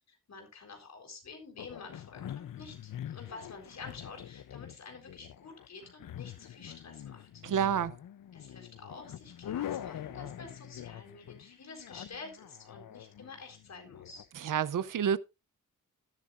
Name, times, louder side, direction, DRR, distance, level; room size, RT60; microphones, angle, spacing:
voice 1, 0.3-7.4 8.3-14.3, left 4 dB, 55° left, 4.0 m, -49 dB
sound 1, 1.6-14.2, left 11 dB, 75° left, 0.6 m, -44 dB
voice 2, 7.4-8.0 14.4-15.2, right 8 dB, 75° right, 0.6 m, -29 dB
13.5 x 10.0 x 2.5 m
wide cardioid pair, 165°, 33 cm